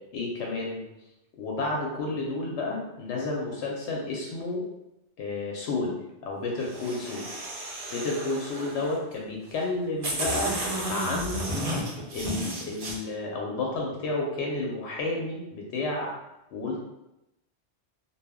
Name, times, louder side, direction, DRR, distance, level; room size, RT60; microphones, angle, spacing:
voice 1, 0.1-0.8 1.4-4.6 5.2-6.0 6.2-7.3 7.9-10.5 10.9-11.5 12.1-16.1 16.5-16.8, left 2 dB, 85° left, -2 dB, 0.9 m, -31 dB
sound 1, 6.6-8.9 9.6-9.7 10.0-12.9, right 1 dB, 50° right, 0.5 m, -32 dB
2.1 x 2.0 x 3.5 m, 0.92 s
omnidirectional pair, 1.1 m